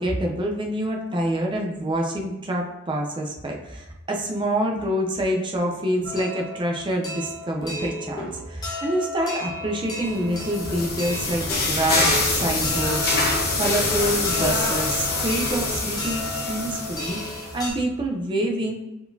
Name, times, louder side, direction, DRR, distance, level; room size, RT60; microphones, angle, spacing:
voice 1, 0.0-13.1 13.5-18.7, right 1 dB, 25° right, 0 dB, 0.6 m, -26 dB
sound 1, 6.0-17.7, left 1 dB, 20° left, 0.9 m, -34 dB
sound 2, 10.0-17.6, left 2 dB, 50° left, 1.0 m, -25 dB
4.7 x 3.8 x 2.6 m, 1.0 s
head